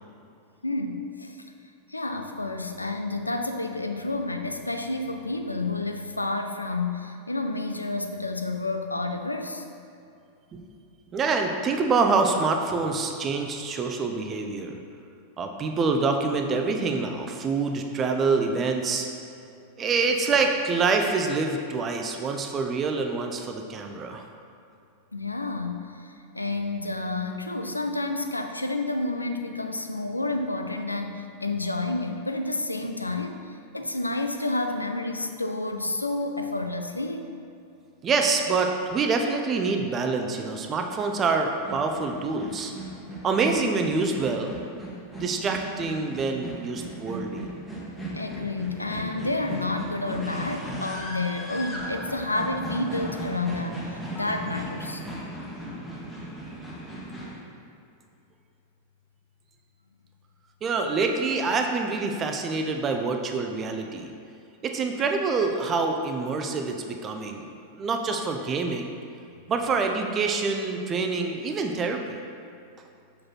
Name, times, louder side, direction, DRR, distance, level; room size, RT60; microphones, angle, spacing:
voice 1, 0.6-1.4 1.9-9.6 25.1-33.4 33.7-37.3 48.1-55.0, left 2 dB, 85° left, 6 dB, 0.4 m, -30 dB
voice 2, 11.1-14.8 15.4-19.1 19.8-24.3 38.0-42.7 43.2-44.5 45.2-47.5 60.6-64.1 64.6-68.9 69.5-72.2, right 4 dB, 25° right, 4 dB, 0.6 m, -26 dB
sound 1, 41.6-57.4, right 1 dB, 5° left, 1.4 m, -37 dB
6.0 x 5.0 x 4.2 m, 2.6 s
figure-of-eight pair, 90°, 0 cm